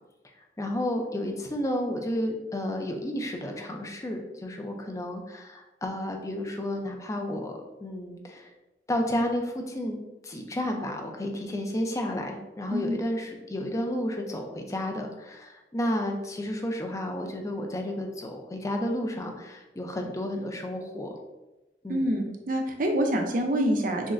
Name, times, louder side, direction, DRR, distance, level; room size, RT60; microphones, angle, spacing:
voice 1, 0.6-8.5 8.9-10.0 10.2-21.1 21.8-22.1, left 1 dB, 15° left, 3 dB, 0.4 m, -32 dB
voice 2, 21.9-24.1, equal, 45° right, 3 dB, 0.5 m, -26 dB
6.2 x 2.1 x 2.4 m, 1.0 s
head